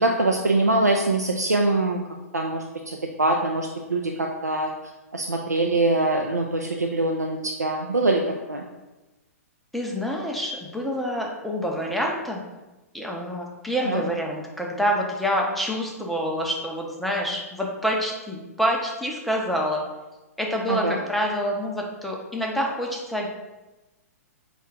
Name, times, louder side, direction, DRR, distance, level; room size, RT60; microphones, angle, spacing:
voice 1, 0.0-2.0 2.3-4.7 5.1-8.2 8.5-8.6 13.9-14.0 20.7-21.0, right 2 dB, 90° right, 0 dB, 0.4 m, -23 dB
voice 2, 9.7-12.4 12.9-19.8 20.4-23.3, equal, ahead, -1 dB, 0.5 m, -27 dB
4.4 x 2.3 x 3.4 m, 1.1 s
figure-of-eight pair, 115°, 9 cm